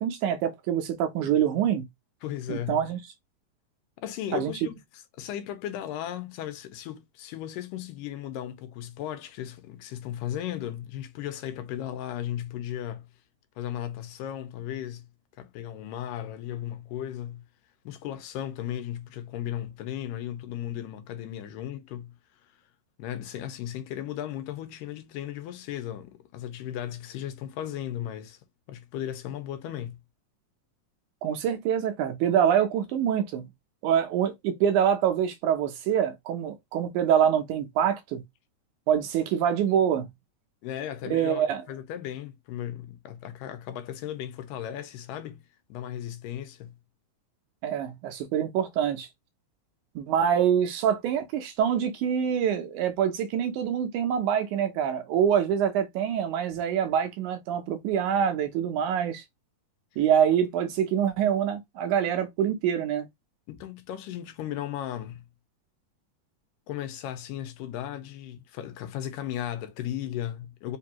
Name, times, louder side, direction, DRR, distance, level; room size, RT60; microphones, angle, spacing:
voice 1, 0.0-1.9 2.5-3.0 4.3-4.5 31.2-33.4 33.8-38.2 38.9-40.1 41.1-41.6 47.6-49.1 50.0-59.2 60.0-63.1, right 9 dB, 75° right, 1.9 m, -25 dB
voice 2, 2.2-2.9 4.0-13.1 13.6-15.1 15.4-17.4 17.9-22.1 23.0-28.4 28.7-30.0 40.6-45.4 45.7-46.7 60.3-60.4 63.5-65.2 66.7-70.8, left 11 dB, 90° left, 2.3 m, -36 dB
5.3 x 2.5 x 2.8 m
omnidirectional pair, 3.9 m